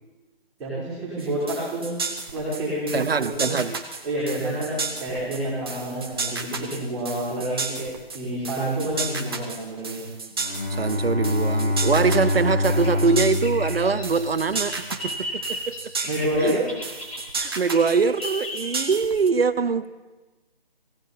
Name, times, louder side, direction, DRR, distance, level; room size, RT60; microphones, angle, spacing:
voice 1, 0.6-1.9 2.3-3.5 4.0-10.0 16.1-16.6, right 1 dB, 5° right, 4.5 m, -28 dB
sound 1, 1.2-19.3, right 4 dB, 25° right, 0.9 m, -33 dB
voice 2, 2.9-3.8 10.7-15.8 16.4-16.6 17.4-19.9, right 5 dB, 75° right, 0.7 m, -23 dB
Bowed string instrument, 10.4-14.7, left 2 dB, 65° left, 2.7 m, -25 dB
Bird vocalization bird call bird song, 12.7-19.2, equal, 35° left, 4.5 m, -36 dB
17.0 x 16.5 x 4.3 m
figure-of-eight pair, 165°, 30 cm